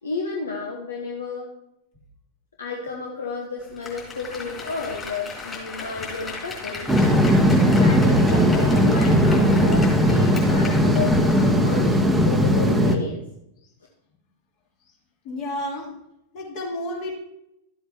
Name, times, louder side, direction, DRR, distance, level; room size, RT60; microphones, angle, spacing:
voice 1, 0.0-1.5 2.6-6.9 7.8-13.2 15.8-15.9, left 3 dB, 70° left, 0 dB, 1.2 m, -31 dB
Applause, 3.6-11.8 12.1-12.2, left 4 dB, 20° left, 4.0 m, -37 dB
sound 1, 6.9-13.0, equal, 5° right, 1.1 m, -18 dB
voice 2, 15.2-15.9 16.3-17.1, left 1 dB, 45° left, -2 dB, 3.3 m, -30 dB
13.0 x 8.0 x 2.9 m, 0.83 s
figure-of-eight pair, 90°, 0 cm